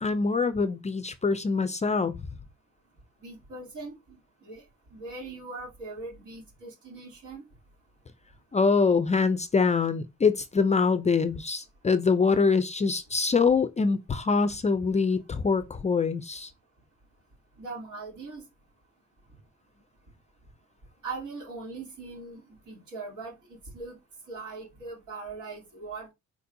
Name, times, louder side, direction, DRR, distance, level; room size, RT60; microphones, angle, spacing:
voice 1, 0.0-2.1 8.5-16.5, left 4 dB, 25° left, 0.4 m, -24 dB
voice 2, 3.2-4.6 4.9-7.4 17.6-18.4 21.0-22.4 22.7-24.0 24.3-26.1, right 3 dB, 75° right, 3.4 m, -40 dB
4.5 x 4.1 x 2.7 m
cardioid pair, 90°, 30 cm